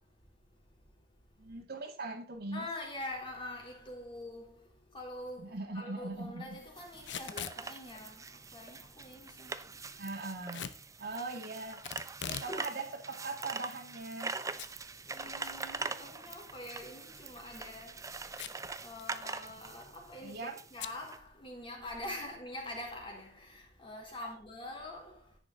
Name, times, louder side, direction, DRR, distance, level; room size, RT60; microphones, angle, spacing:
voice 1, 1.4-2.7 5.4-6.6 10.0-10.7 11.0-11.8 12.2-14.4 20.2-20.6 24.2-24.3, right 3 dB, 60° right, 2.3 m, -40 dB
voice 2, 2.5-9.6 15.1-18.1 18.8-25.4, left 1 dB, 30° left, 3.6 m, -45 dB
sound 1, 6.8-21.2, right 4 dB, 20° right, 0.6 m, -43 dB
Packing tape duct tape / Tearing, 7.0-7.6 10.5-10.8 11.8-12.5 12.9-13.0 13.7-14.3 14.6-14.7 15.1-15.2 17.1-17.4 18.3-18.7 19.0-19.1 19.3-19.7 20.8-21.0, left 8 dB, 75° left, 0.8 m, -41 dB
10.5 x 9.9 x 4.0 m
head